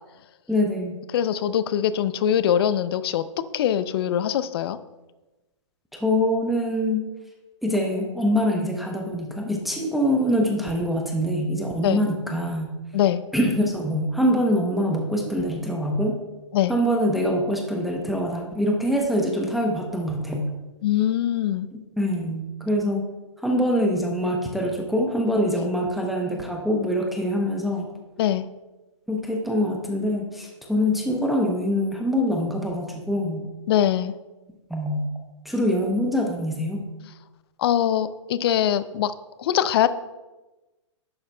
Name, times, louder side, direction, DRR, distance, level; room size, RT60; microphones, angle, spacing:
voice 1, 0.5-1.0 5.9-7.0 7.6-12.7 13.3-16.2 16.7-20.4 21.7-23.0 23.4-27.9 29.1-33.5 34.7-35.1 35.4-36.8, equal, ahead, 0 dB, 0.8 m, -24 dB
voice 2, 1.1-3.2 3.5-4.8 11.8-12.0 12.9-13.2 16.5-16.7 20.8-21.7 28.2-28.5 33.7-34.1 37.6-39.9, left 10 dB, 50° left, 14 dB, 0.5 m, -22 dB
11.0 x 6.4 x 2.2 m, 1.1 s
hypercardioid pair, 125°, 16 cm